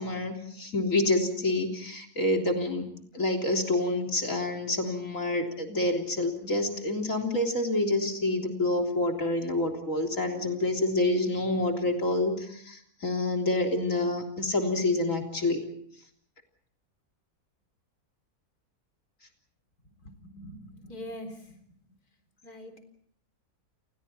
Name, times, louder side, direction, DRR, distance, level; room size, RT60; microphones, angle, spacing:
voice 1, 0.0-2.9 3.1-15.6, left 2 dB, 60° left, 3 dB, 3.9 m, -28 dB
voice 2, 19.8-21.6 22.4-22.8, equal, 85° left, 6 dB, 4.4 m, -43 dB
29.5 x 29.0 x 4.3 m, 0.64 s
omnidirectional pair, 1.6 m